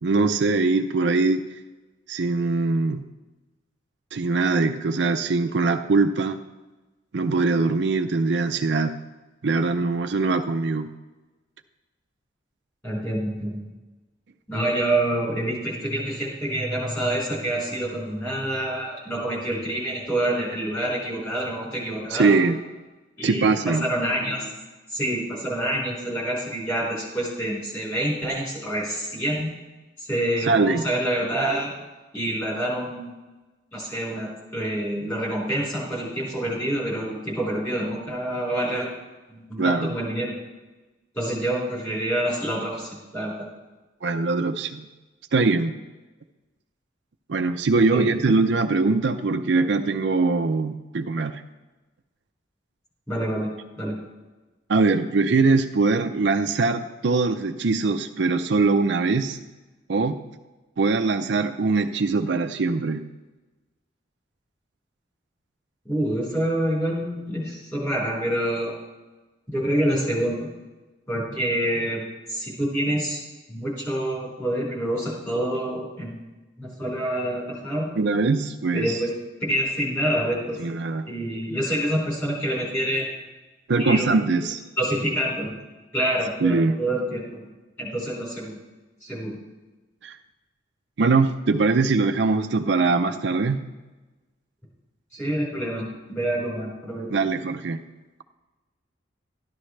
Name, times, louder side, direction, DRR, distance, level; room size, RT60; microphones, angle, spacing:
voice 1, 0.0-1.4 2.1-3.0 4.1-6.4 7.1-9.0 9.4-10.9 22.1-22.6 23.2-23.9 30.5-30.8 39.6-39.9 44.0-44.9 45.3-45.7 47.3-51.4 54.7-59.4 59.9-60.2 60.8-63.1 78.0-79.0 80.6-81.1 83.7-84.6 86.4-86.8 90.0-90.2 91.0-93.6 97.1-97.8, right 3 dB, 70° right, 7 dB, 0.5 m, -22 dB
voice 2, 12.8-13.6 14.5-22.4 23.2-24.5 24.9-29.5 30.0-31.7 32.1-33.2 33.7-38.9 39.3-40.3 41.1-43.5 47.9-48.1 53.1-54.0 65.8-68.7 69.5-70.5 71.1-72.0 72.3-73.2 73.5-76.2 76.6-77.9 78.7-79.1 79.4-80.6 81.1-83.1 83.8-84.2 84.8-85.5 85.9-87.5 87.8-88.6 89.0-89.4 95.1-97.1, right 1 dB, 15° left, -5 dB, 4.2 m, -27 dB
13.0 x 11.5 x 3.2 m, 1.2 s
head